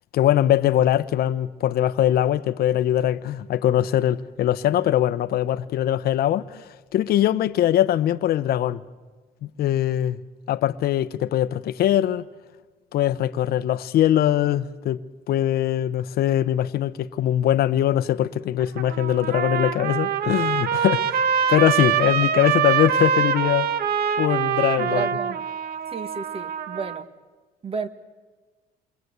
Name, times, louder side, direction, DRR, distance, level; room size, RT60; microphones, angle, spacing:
voice 1, 0.1-8.8 9.6-10.2 10.5-12.2 12.9-15.0 15.3-21.2 21.5-23.7 24.2-25.1, left 12 dB, 65° left, 0.8 m, -22 dB
Trumpet, 18.6-27.0, right 8 dB, 65° right, 1.1 m, -24 dB
voice 2, 24.8-25.5 25.9-27.1 27.6-27.9, right 5 dB, 35° right, 1.8 m, -32 dB
28.0 x 23.0 x 8.1 m
cardioid pair, 110°, 17 cm